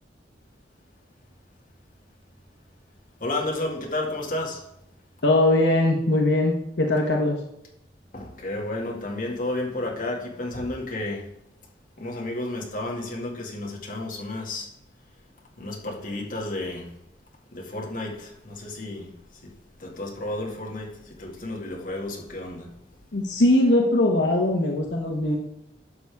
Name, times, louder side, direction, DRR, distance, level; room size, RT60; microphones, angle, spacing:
voice 1, 3.2-4.6 8.1-11.3 12.0-14.7 15.6-17.0 17.5-19.1 19.4-19.5 19.8-22.7, left 2 dB, 50° left, 2.1 m, -32 dB
voice 2, 5.2-7.4 23.1-25.4, left 1 dB, 80° left, 1.2 m, -21 dB
11.0 x 6.7 x 3.5 m
head